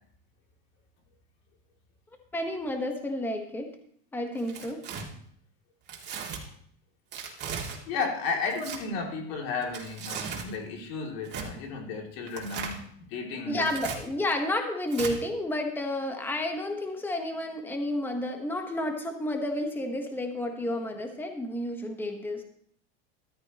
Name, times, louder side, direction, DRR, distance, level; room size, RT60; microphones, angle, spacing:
voice 1, 2.3-3.7 4.1-4.8 13.5-22.4, left 1 dB, 5° left, 4 dB, 1.2 m, -31 dB
Tearing, 4.3-5.0 5.9-6.4 7.1-7.8 8.5-8.8 9.6-10.5 11.2-11.5 12.3-12.8 13.6-14.0 14.9-15.1, right 6 dB, 35° right, 2.6 m, -37 dB
voice 2, 7.9-13.7, left 4 dB, 70° left, 2 dB, 3.0 m, -33 dB
13.5 x 13.0 x 3.1 m, 0.64 s
supercardioid pair, 130°, 31 cm